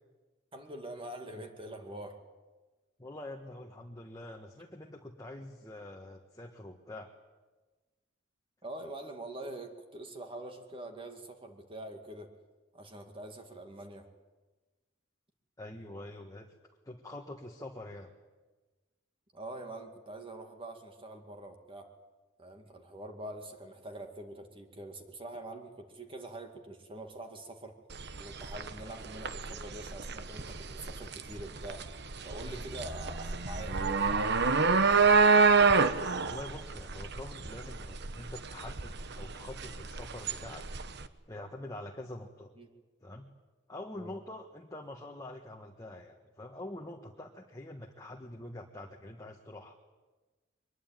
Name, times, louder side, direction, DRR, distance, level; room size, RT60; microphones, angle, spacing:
voice 1, 0.5-2.2 8.6-12.3 12.7-14.1 19.3-21.9 22.4-27.8 28.2-31.8 32.2-34.8 42.6-42.7 43.9-44.1, right 1 dB, 25° right, 4 dB, 2.3 m, -44 dB
voice 2, 3.0-7.1 15.6-16.5 16.8-18.1 32.4-32.7 36.3-40.6 41.3-42.5 43.0-43.2 43.7-49.7, left 1 dB, 20° left, 1 dB, 1.6 m, -45 dB
sound 1, 27.9-41.1, right 4 dB, 60° right, 1.1 m, -28 dB
23.5 x 21.0 x 9.2 m, 1.2 s
head